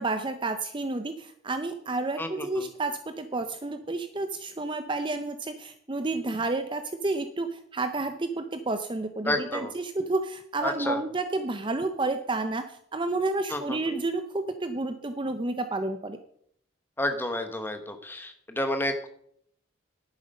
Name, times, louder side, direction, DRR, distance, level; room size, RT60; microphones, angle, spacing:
voice 1, 0.0-16.2, right 2 dB, 25° right, 9 dB, 0.6 m, -30 dB
voice 2, 9.2-9.7 10.6-11.0 13.5-14.0 17.0-19.1, left 1 dB, 10° left, 7 dB, 1.1 m, -30 dB
11.0 x 9.0 x 5.4 m, 0.67 s
head